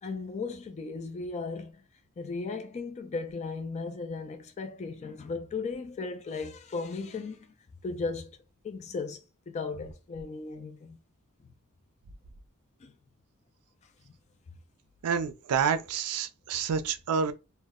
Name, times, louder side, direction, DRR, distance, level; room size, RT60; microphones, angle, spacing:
voice 1, 0.0-1.8 2.2-7.5 7.8-8.4 8.6-11.0 12.8-12.9, left 4 dB, 30° left, 0.3 m, -36 dB
voice 2, 15.0-17.3, right 6 dB, 85° right, 0.4 m, -28 dB
2.1 x 2.0 x 3.4 m
head